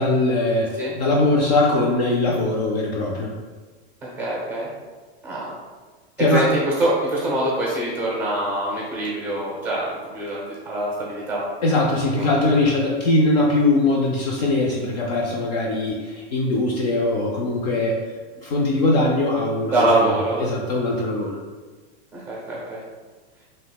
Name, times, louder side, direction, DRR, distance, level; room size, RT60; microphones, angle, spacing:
voice 1, 0.0-0.7 1.0-3.3 6.2-6.5 11.6-18.0 18.4-21.4, left 2 dB, 40° left, -2 dB, 0.4 m, -21 dB
voice 2, 4.0-4.7 5.2-5.5 6.3-9.8 10.1-11.4 12.1-12.3 19.7-20.4 22.1-22.8, right 1 dB, 5° right, -5 dB, 0.8 m, -24 dB
5.3 x 3.1 x 2.3 m, 1.4 s
supercardioid pair, 175°, 32 cm